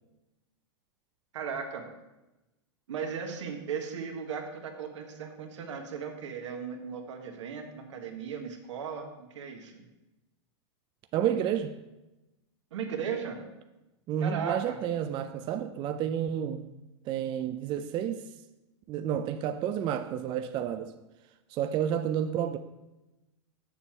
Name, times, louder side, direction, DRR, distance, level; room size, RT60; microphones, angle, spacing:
voice 1, 1.3-1.9 2.9-9.8 12.7-13.4 14.2-14.8, right 6 dB, 80° right, 1.4 m, -37 dB
voice 2, 11.1-11.8 14.1-16.7 17.1-18.3 18.9-20.9 21.5-22.6, right 9 dB, 30° right, 0.4 m, -30 dB
7.2 x 6.8 x 4.4 m
hypercardioid pair, 125°, 15 cm